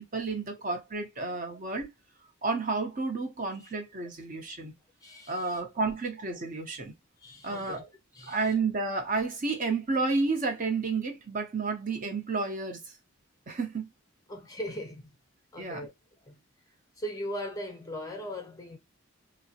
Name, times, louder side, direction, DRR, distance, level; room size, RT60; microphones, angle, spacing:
voice 1, 0.0-1.9 2.4-4.7 5.3-6.9 7.4-7.8 8.3-12.9 13.5-13.9 15.6-15.9, right 3 dB, 40° right, 0.6 m, -31 dB
voice 2, 5.0-5.6 7.2-7.9 8.1-8.5 14.3-15.1 15.5-15.9 16.2-16.4 17.0-18.8, equal, 15° left, 0.6 m, -39 dB
3.3 x 2.0 x 2.7 m
head